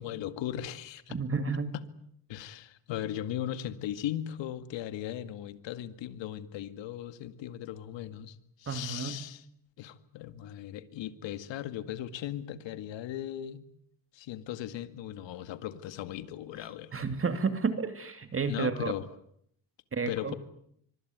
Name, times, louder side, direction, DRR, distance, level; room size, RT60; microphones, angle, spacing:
voice 1, 0.0-1.2 1.7-1.8 2.3-9.5 9.8-13.6 14.1-17.0 18.5-19.1 20.1-20.3, left 11 dB, 75° left, 2.2 m, -38 dB
voice 2, 1.1-1.8 8.7-9.2 16.9-18.9 19.9-20.4, right 5 dB, 30° right, 2.6 m, -31 dB
25.0 x 24.5 x 9.5 m
cardioid pair, 105°, 44 cm